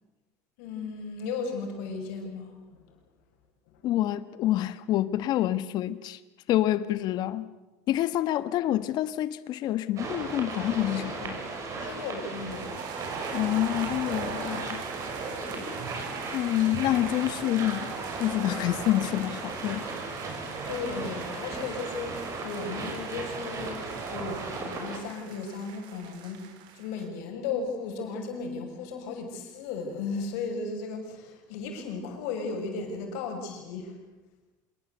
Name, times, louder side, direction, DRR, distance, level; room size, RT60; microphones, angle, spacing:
voice 1, 0.6-3.0 3.7-3.8 11.8-12.8 15.5-15.9 20.7-34.0, left 4 dB, 75° left, 6.4 m, -35 dB
voice 2, 3.8-6.2 6.5-7.5 7.9-11.4 13.3-14.8 16.3-17.9 18.2-19.8, left 13 dB, 55° left, 1.4 m, -27 dB
sound 1, 10.0-25.0, right 3 dB, 40° right, 6.7 m, -36 dB
sound 2, 12.5-27.1, right 9 dB, 60° right, 3.4 m, -43 dB
26.5 x 20.0 x 8.1 m
supercardioid pair, 110°, 8 cm